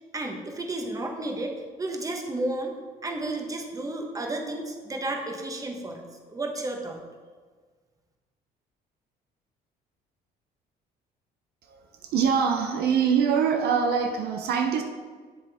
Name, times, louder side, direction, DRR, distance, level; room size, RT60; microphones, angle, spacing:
voice 1, 0.1-2.7 3.0-7.0, right 2 dB, 20° right, 2 dB, 1.2 m, -32 dB
voice 2, 11.7-14.8, right 6 dB, 70° right, 4 dB, 0.7 m, -24 dB
7.6 x 7.2 x 3.5 m, 1.5 s
cardioid pair, 110°, 17 cm